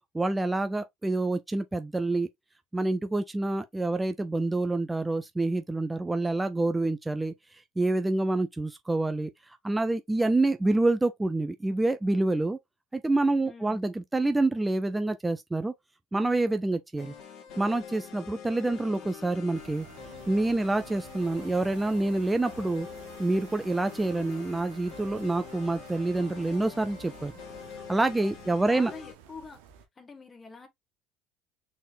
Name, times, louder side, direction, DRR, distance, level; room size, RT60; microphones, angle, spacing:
voice 1, 0.1-2.3 2.7-7.3 7.8-9.3 9.6-12.6 12.9-15.7 16.1-17.1 17.6-19.9 20.3-22.9 23.2-27.3 27.9-28.9, right 2 dB, 10° right, 0.5 m, -27 dB
voice 2, 13.4-13.8 28.2-29.6 30.0-30.7, left 4 dB, 25° left, 1.3 m, -46 dB
sound 1, 17.0-29.1, left 7 dB, 65° left, 1.7 m, -45 dB
sound 2, 19.5-29.9, right 8 dB, 85° right, 1.0 m, -50 dB
4.2 x 3.6 x 2.6 m
supercardioid pair, 95°, 0 cm